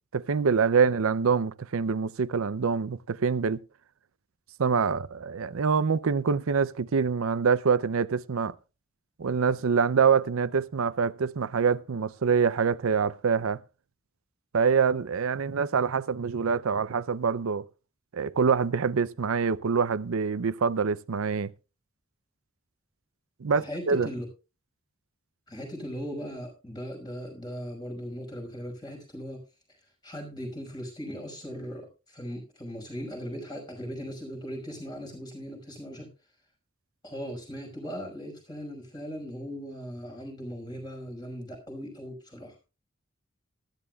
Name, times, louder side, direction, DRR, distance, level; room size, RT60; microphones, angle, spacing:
voice 1, 0.1-3.6 4.6-8.5 9.2-13.6 14.5-17.7 18.1-21.5 23.4-24.1, right 5 dB, 90° right, 0.6 m, -25 dB
voice 2, 23.5-24.3 25.5-29.4 30.0-36.1 37.0-42.5, equal, 20° left, 5.4 m, -38 dB
18.0 x 13.0 x 2.3 m
head